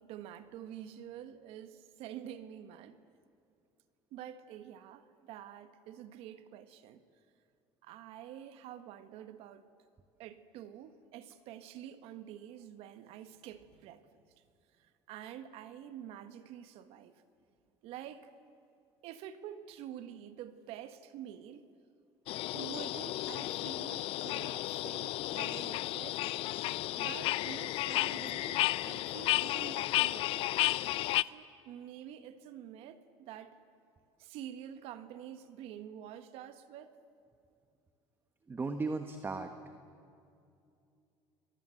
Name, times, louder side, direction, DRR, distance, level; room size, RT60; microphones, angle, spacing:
voice 1, 0.0-3.0 4.1-7.0 7.8-9.7 10.2-14.0 14.8-17.2 17.8-18.3 19.0-21.7 22.5-26.2 26.9-30.7 31.2-33.6 34.2-37.0, right 10 dB, 70° right, 1.6 m, -48 dB
swamp at dusk, 22.3-31.2, left 16 dB, 65° left, 0.5 m, -33 dB
voice 2, 38.5-39.5, right 3 dB, 20° right, 1.3 m, -35 dB
29.5 x 22.5 x 7.9 m
cardioid pair, 120°, 10 cm